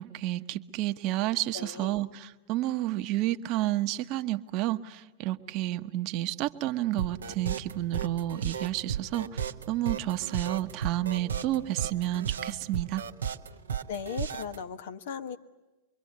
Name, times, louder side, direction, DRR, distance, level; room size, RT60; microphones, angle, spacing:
voice 1, 0.0-13.0, right 15 dB, 45° right, 9 dB, 1.2 m, -30 dB
voice 2, 1.5-2.0 13.9-15.4, left 7 dB, 65° left, 7 dB, 1.4 m, -37 dB
sound 1, 7.0-14.6, right 8 dB, 80° right, 1.1 m, -34 dB
26.0 x 23.0 x 9.6 m, 1.1 s
hypercardioid pair, 100°, 0 cm